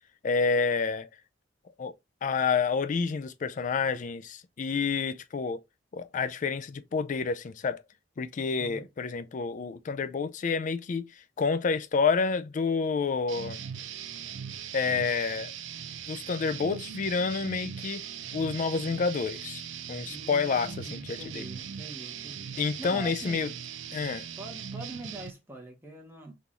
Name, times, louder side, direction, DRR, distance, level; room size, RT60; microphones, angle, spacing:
voice 1, 0.2-1.1 1.8-1.9 2.2-5.6 5.9-7.8 8.2-11.1 11.4-13.6 14.7-15.5 16.1-18.0 18.3-21.4 22.6-23.5 23.9-24.3, left 5 dB, 45° left, 0.4 m, -29 dB
voice 2, 8.6-8.9 20.1-22.4 22.8-23.5 24.4-26.3, right 1 dB, 10° right, 1.0 m, -44 dB
sound 1, 13.3-25.3, right 8 dB, 80° right, 0.4 m, -40 dB
3.8 x 2.6 x 2.8 m
head